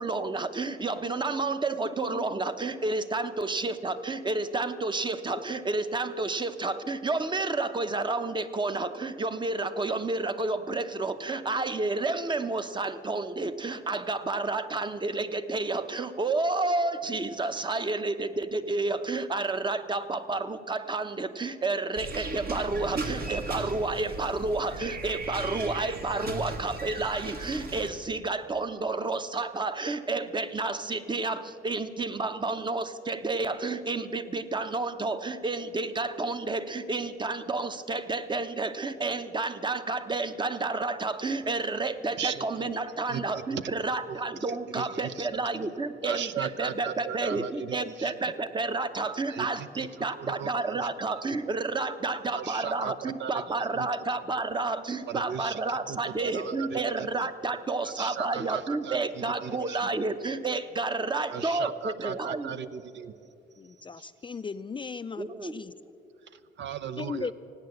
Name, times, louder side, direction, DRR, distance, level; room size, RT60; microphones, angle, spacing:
voice 1, 0.0-62.5 65.2-65.5, right 3 dB, 25° right, 11 dB, 0.8 m, -30 dB
sound 1, 22.0-27.9, right 2 dB, 50° right, 1.4 m, -37 dB
voice 2, 42.2-42.7 43.1-43.7 44.1-45.4 46.0-48.3 49.3-50.9 51.3-51.4 52.3-53.9 55.1-57.3 57.8-59.9 61.3-63.1 63.8-64.1 66.2-67.3, right 8 dB, 65° right, 14 dB, 0.6 m, -38 dB
voice 3, 63.6-65.7 67.0-67.3, left 5 dB, 25° left, 12 dB, 0.4 m, -37 dB
16.5 x 9.5 x 7.7 m, 2.8 s
cardioid pair, 90°, 20 cm